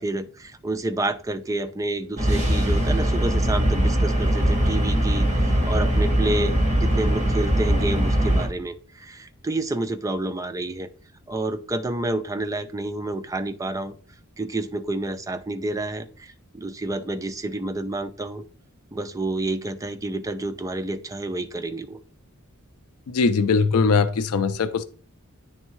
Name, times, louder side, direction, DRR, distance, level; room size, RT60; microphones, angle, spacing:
voice 1, 0.0-10.9 11.3-13.9 14.4-18.4 18.9-22.0, right 2 dB, 15° right, 9 dB, 0.4 m, -29 dB
sound 1, 2.2-8.5, right 1 dB, 35° right, 1.4 m, -21 dB
voice 2, 23.1-24.8, left 4 dB, 80° left, 12 dB, 0.4 m, -21 dB
9.1 x 3.5 x 3.0 m, 0.41 s
head